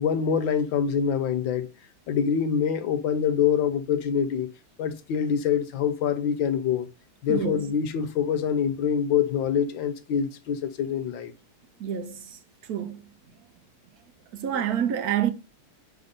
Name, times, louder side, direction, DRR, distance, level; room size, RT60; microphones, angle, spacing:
voice 1, 0.0-1.7 2.1-4.5 4.8-6.9 7.2-11.3, left 7 dB, 70° left, 1.4 m, -25 dB
voice 2, 7.3-7.7 11.8-13.0 14.3-15.3, right 9 dB, 85° right, 0.8 m, -28 dB
5.6 x 3.8 x 5.1 m
omnidirectional pair, 2.4 m